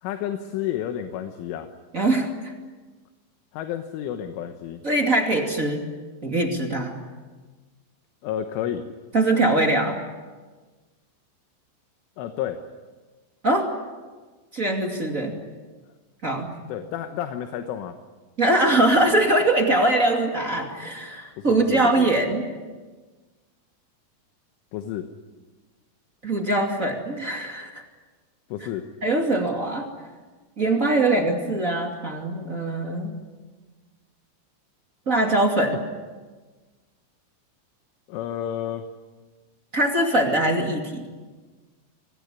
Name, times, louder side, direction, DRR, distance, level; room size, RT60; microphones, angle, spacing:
voice 1, 0.0-1.7 3.5-4.8 8.2-8.9 12.2-12.6 16.7-18.0 21.4-22.1 24.7-25.1 28.5-28.9 35.7-35.8 38.1-38.9, left 10 dB, 75° left, 7 dB, 3.5 m, -31 dB
voice 2, 1.9-2.5 4.8-5.9 6.2-7.0 9.1-10.0 13.4-13.7 14.5-15.3 16.2-16.6 18.4-22.5 26.2-27.8 29.0-29.9 30.6-33.1 35.0-35.8 39.7-41.1, right 2 dB, 35° right, 2 dB, 1.3 m, -22 dB
25.5 x 20.0 x 9.9 m, 1.4 s
omnidirectional pair, 5.9 m